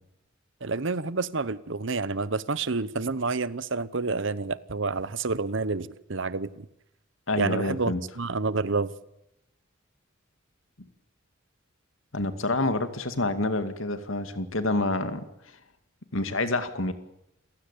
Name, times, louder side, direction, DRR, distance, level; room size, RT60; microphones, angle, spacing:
voice 1, 0.6-6.7 7.4-8.9, right 3 dB, 60° right, 17 dB, 1.0 m, -29 dB
voice 2, 7.3-8.0 12.1-15.2 16.1-16.9, left 2 dB, 70° left, 9 dB, 2.3 m, -27 dB
28.5 x 16.5 x 8.5 m, 0.83 s
head